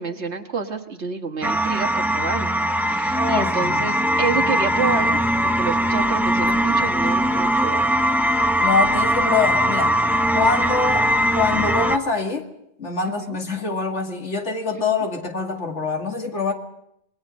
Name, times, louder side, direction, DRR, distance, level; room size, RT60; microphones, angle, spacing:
voice 1, 0.0-2.5 2.8-5.2 5.6-7.8 13.0-13.4 14.7-14.8, right 5 dB, 70° right, 5 dB, 1.9 m, -28 dB
sound 1, 1.4-12.0, equal, ahead, 0.9 m, -20 dB
voice 2, 3.0-3.8 8.6-10.0 10.3-12.5 12.8-16.5, left 4 dB, 75° left, 3 dB, 2.5 m, -24 dB
26.5 x 21.0 x 5.4 m, 0.78 s
omnidirectional pair, 1.2 m